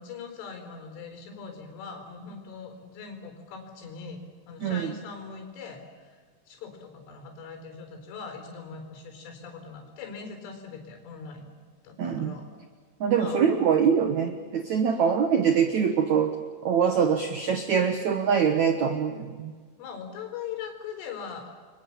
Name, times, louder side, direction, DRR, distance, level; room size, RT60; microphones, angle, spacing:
voice 1, 0.0-4.2 4.5-6.2 6.5-11.5 11.8-12.5 13.1-13.5 19.8-21.5, left 5 dB, 85° left, 4 dB, 6.7 m, -41 dB
voice 2, 4.6-4.9 12.0-12.4 13.0-16.4 16.6-19.5, right 7 dB, 80° right, 7 dB, 1.6 m, -24 dB
30.0 x 23.0 x 7.3 m, 1.5 s
omnidirectional pair, 5.5 m